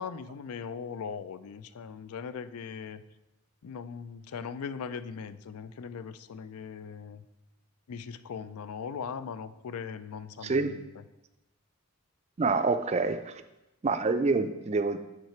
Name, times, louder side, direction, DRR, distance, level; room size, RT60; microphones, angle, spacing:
voice 1, 0.0-3.0 3.6-7.2 7.9-10.8, left 6 dB, 85° left, 13 dB, 0.4 m, -39 dB
voice 2, 10.4-10.7 12.4-13.4 13.8-15.0, right 3 dB, 30° right, 10 dB, 0.3 m, -27 dB
5.9 x 5.7 x 4.4 m, 0.97 s
head